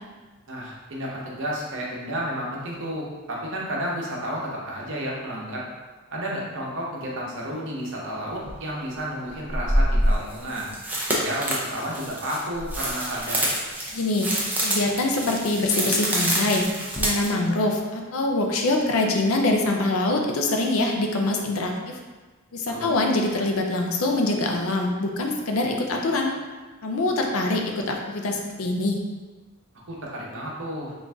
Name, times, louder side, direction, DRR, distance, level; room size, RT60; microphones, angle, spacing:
voice 1, 0.5-5.6 6.1-10.7 11.1-13.5 22.7-22.9 29.9-30.9, equal, 60° right, -3 dB, 0.9 m, -31 dB
sound 1, 8.5-8.6 9.4-17.3, right 1 dB, 10° right, 0.6 m, -26 dB
voice 2, 13.9-22.0 22.5-26.3 26.8-29.0, left 2 dB, 70° left, 2 dB, 0.5 m, -24 dB
3.8 x 2.5 x 3.4 m, 1.3 s
head